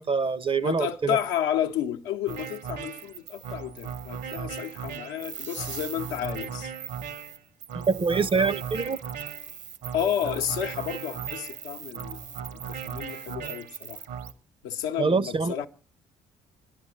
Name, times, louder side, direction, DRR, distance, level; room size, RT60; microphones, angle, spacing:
voice 1, 0.0-1.2 7.7-9.0 15.0-15.5, right 4 dB, 25° right, 0.6 m, -25 dB
voice 2, 0.6-6.7 9.9-14.1 14.6-15.7, left 10 dB, 70° left, 0.8 m, -31 dB
sound 1, 2.3-14.3, right 7 dB, 60° right, 0.9 m, -37 dB
28.5 x 11.0 x 3.0 m
figure-of-eight pair, 45°, 20 cm